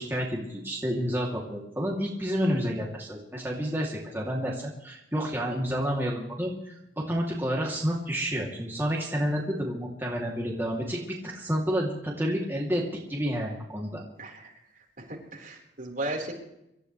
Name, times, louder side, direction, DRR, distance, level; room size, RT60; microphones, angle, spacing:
voice 1, 0.0-6.7 7.1-12.8 13.1-14.0, equal, 15° right, -3 dB, 2.8 m, -29 dB
voice 2, 15.1-16.3, right 2 dB, 50° right, -1 dB, 4.3 m, -35 dB
26.0 x 13.5 x 3.3 m, 0.83 s
head